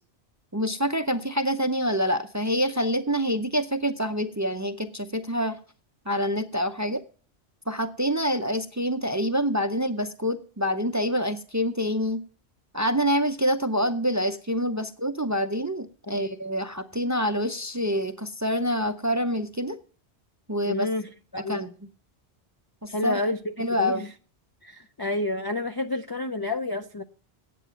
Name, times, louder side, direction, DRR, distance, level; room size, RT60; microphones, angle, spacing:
voice 1, 0.5-5.6 6.1-7.0 7.7-12.2 12.7-19.8 20.5-20.9 21.4-21.7 22.8-23.2 23.6-24.0, equal, 25° right, 0.4 m, -26 dB
voice 2, 20.6-21.6 22.9-23.5 23.8-24.1 24.6-27.0, left 2 dB, 40° left, 0.3 m, -29 dB
9.2 x 8.4 x 6.8 m
omnidirectional pair, 1.1 m